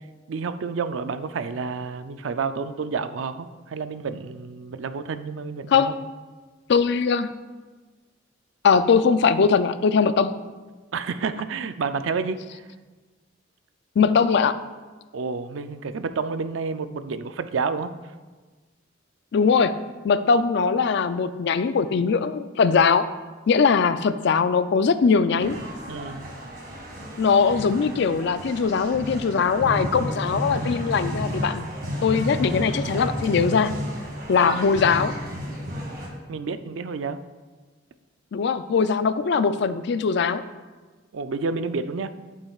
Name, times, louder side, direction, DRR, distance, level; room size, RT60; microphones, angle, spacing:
voice 1, 0.3-5.9 10.9-12.6 15.1-17.9 25.9-26.3 34.4-34.6 36.3-37.2 41.1-42.1, right 5 dB, 85° right, 11 dB, 0.4 m, -30 dB
voice 2, 6.7-7.3 8.6-10.3 14.0-14.6 19.3-19.7 20.0-23.1 23.5-25.6 27.2-31.7 32.0-33.7 34.3-35.2 38.3-40.4, left 5 dB, 60° left, 12 dB, 0.4 m, -21 dB
sound 1, 25.4-36.1, equal, 50° right, 1.9 m, -32 dB
11.0 x 8.6 x 2.4 m, 1.3 s
head